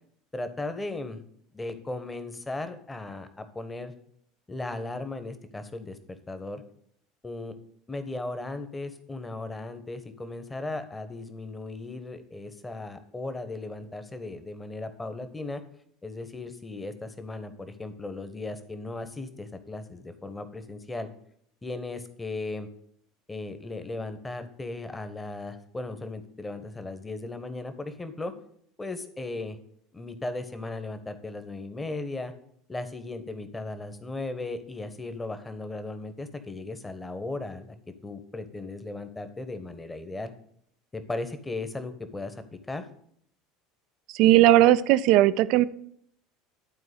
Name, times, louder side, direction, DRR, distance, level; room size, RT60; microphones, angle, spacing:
voice 1, 0.3-1.2 1.5-3.9 4.5-6.6 7.2-7.5 7.9-15.6 16.0-21.1 21.6-22.7 23.3-28.3 28.8-29.6 29.9-32.3 32.7-37.7 38.0-40.3 40.9-42.8, left 2 dB, 15° left, 10 dB, 1.3 m, -36 dB
voice 2, 44.1-45.6, right 14 dB, 55° right, 15 dB, 0.5 m, -18 dB
11.5 x 4.6 x 8.2 m, 0.67 s
figure-of-eight pair, 70°, 0 cm